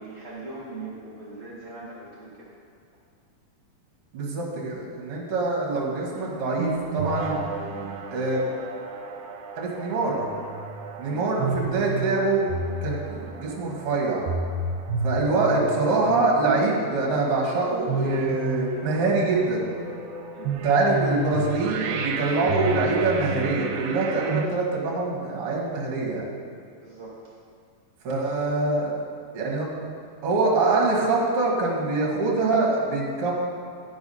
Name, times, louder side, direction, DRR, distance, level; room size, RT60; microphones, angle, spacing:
voice 1, 0.0-2.6 11.1-11.3 20.3-20.6 24.0-24.3 26.8-27.1, right 3 dB, 30° right, -7 dB, 1.6 m, -40 dB
voice 2, 4.1-7.4 8.1-8.4 9.6-10.2 11.0-12.5 12.8-14.3 15.0-19.7 20.6-26.3 28.0-29.0 29.3-29.7 30.2-33.3, right 3 dB, 50° right, -3 dB, 2.1 m, -24 dB
sound 1, 6.1-24.5, right 3 dB, 80° right, 2.2 m, -32 dB
11.0 x 4.8 x 5.6 m, 2.2 s
omnidirectional pair, 4.1 m